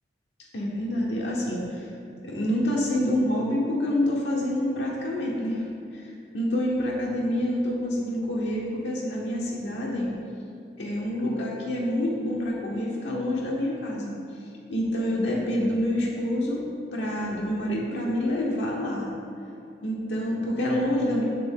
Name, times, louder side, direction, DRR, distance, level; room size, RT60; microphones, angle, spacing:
voice 1, 0.5-1.9 2.2-5.6 5.9-10.1 10.8-14.1 14.7-16.6 16.9-19.1 19.8-21.2, left 1 dB, 85° left, -4 dB, 0.8 m, -27 dB
8.4 x 3.6 x 3.6 m, 2.5 s
head